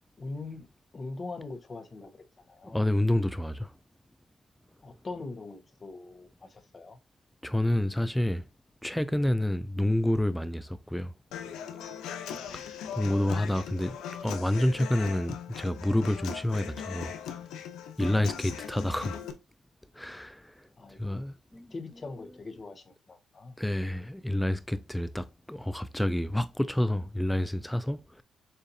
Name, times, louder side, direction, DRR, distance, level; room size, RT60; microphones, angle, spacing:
voice 1, 0.2-0.6 0.9-2.9 4.8-7.0 20.8-21.3 21.5-23.6, left 3 dB, 35° left, 0.9 m, -42 dB
voice 2, 2.7-3.7 7.4-8.5 8.8-11.1 12.5-14.0 14.2-17.1 18.0-19.2 19.9-21.7 23.6-28.2, left 1 dB, 5° left, 0.3 m, -29 dB
Human voice / Acoustic guitar, 11.3-19.3, left 8 dB, 85° left, 0.7 m, -39 dB
6.8 x 2.5 x 2.7 m
cardioid pair, 90°, 0 cm